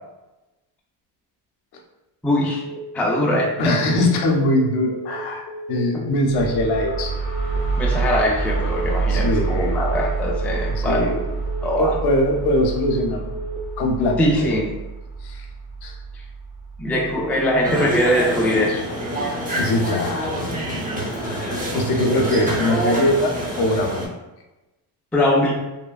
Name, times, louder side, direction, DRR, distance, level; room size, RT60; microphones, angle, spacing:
voice 1, 2.2-2.6 2.9-3.8 7.8-11.1 11.6-11.9 14.2-14.7 16.8-18.8 25.1-25.6, left 1 dB, 5° left, -2 dB, 0.3 m, -21 dB
Telephone, 2.5-2.8 3.1-3.4 3.7-4.0 4.3-4.6 4.9-5.2 5.5-5.8 6.1-6.4 6.7-7.0 7.3-7.6 7.9-8.2 8.5-8.8 9.1-9.4 9.7-10.0 10.3-10.6 10.9-11.2 11.5-11.8 12.1-12.4 12.7-13.0 13.3-13.6, right 1 dB, 30° left, 0.6 m, -35 dB
voice 2, 3.6-7.1 9.0-9.8 10.7-11.2 11.8-13.3 13.8-14.2 14.5-14.6 15.2-15.5 15.8-16.0 19.6-20.5 21.0-24.1, left 1 dB, 70° left, 1 dB, 0.7 m, -22 dB
sound 1, 6.3-17.9, right 4 dB, 50° right, 1.3 m, -27 dB
sound 2, 17.6-24.1, right 1 dB, 20° right, 0.7 m, -26 dB
3.1 x 2.1 x 2.3 m, 1.0 s
cardioid pair, 105°, 41 cm